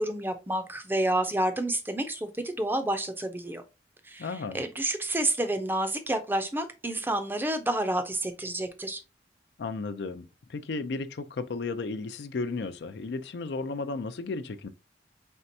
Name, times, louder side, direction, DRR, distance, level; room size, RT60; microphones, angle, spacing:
voice 1, 0.0-3.6 4.0-9.0, right 1 dB, 10° right, 0.5 m, -29 dB
voice 2, 4.2-4.6 9.6-14.7, left 3 dB, 65° left, 0.4 m, -34 dB
4.4 x 3.3 x 2.7 m
head